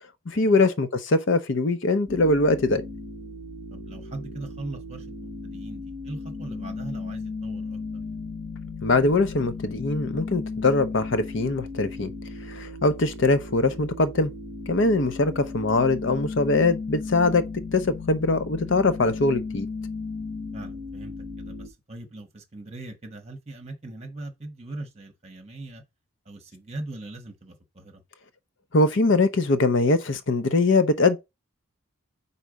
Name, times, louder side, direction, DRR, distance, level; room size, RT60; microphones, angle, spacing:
voice 1, 0.3-2.8 8.8-12.1 12.5-14.3 14.7-17.4 17.7-19.7 28.7-31.2, left 2 dB, 60° left, 0.6 m, -22 dB
sound 1, 2.1-21.7, left 3 dB, 20° left, 2.4 m, -36 dB
voice 2, 3.7-7.8 20.5-25.8 26.3-28.0, right 2 dB, 30° right, 1.3 m, -40 dB
4.6 x 4.2 x 5.1 m
head